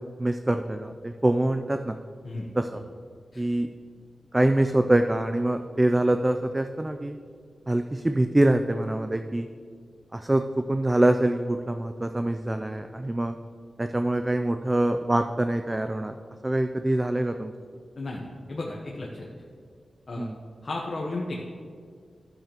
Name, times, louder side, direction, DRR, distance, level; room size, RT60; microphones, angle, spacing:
voice 1, 0.2-2.0 2.6-2.8 3.4-3.7 4.3-7.1 7.7-9.5 10.1-10.4 10.7-13.4 13.8-16.1 16.4-17.5 20.2-20.3, right 1 dB, 20° right, 7 dB, 0.3 m, -24 dB
voice 2, 18.0-19.3 20.1-20.3 20.6-21.4, left 2 dB, 55° left, -2 dB, 0.9 m, -34 dB
12.0 x 6.9 x 3.0 m, 2.1 s
wide cardioid pair, 75°, 0 cm